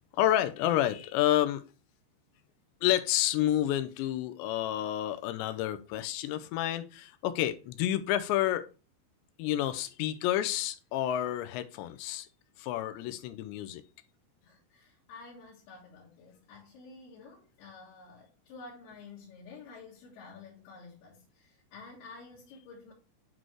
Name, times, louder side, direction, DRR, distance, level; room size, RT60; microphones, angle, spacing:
voice 1, 0.1-1.6 2.8-8.7 9.4-12.3 12.6-13.8, left 12 dB, 90° left, 2.9 m, -29 dB
voice 2, 14.4-22.9, left 4 dB, 65° left, 3.5 m, -50 dB
9.1 x 4.2 x 3.1 m
omnidirectional pair, 5.1 m